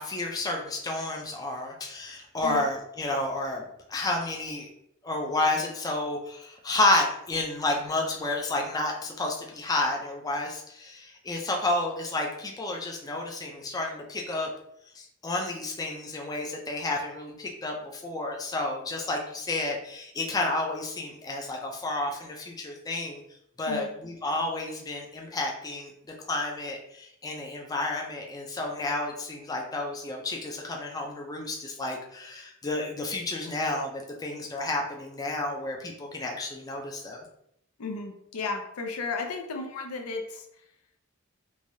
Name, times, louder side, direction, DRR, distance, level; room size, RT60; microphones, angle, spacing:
voice 1, 0.0-3.6 3.9-4.7 5.0-14.5 14.9-23.2 23.6-25.9 26.3-37.2, left 2 dB, 15° left, 0 dB, 0.3 m, -31 dB
voice 2, 37.8-40.5, left 4 dB, 85° left, 4 dB, 0.5 m, -34 dB
3.2 x 2.2 x 2.6 m, 0.75 s
head